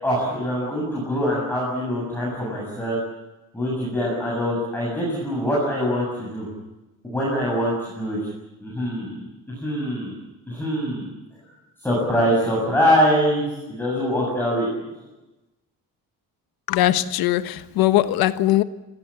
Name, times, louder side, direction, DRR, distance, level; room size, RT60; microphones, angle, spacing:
voice 1, 0.0-3.0 3.5-6.5 7.0-8.2 8.6-10.1 10.5-11.0 11.8-14.7, equal, 5° left, 7.6 m, -23 dB
voice 2, 16.7-18.6, left 14 dB, 85° left, 1.4 m, -20 dB
27.5 x 17.5 x 8.8 m
cardioid pair, 165°, 35 cm